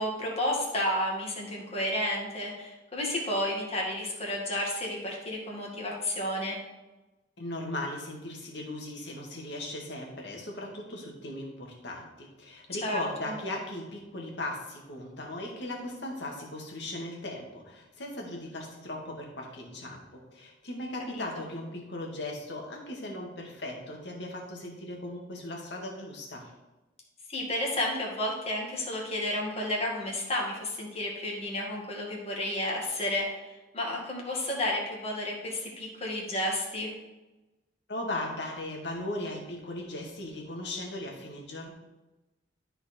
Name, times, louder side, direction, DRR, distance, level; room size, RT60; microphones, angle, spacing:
voice 1, 0.0-6.6 12.8-13.3 21.1-21.4 27.3-36.9, left 1 dB, 35° left, -2 dB, 2.1 m, -31 dB
voice 2, 7.4-26.4 37.9-41.7, left 1 dB, 65° left, 0 dB, 2.0 m, -38 dB
12.5 x 4.5 x 4.4 m, 1.1 s
head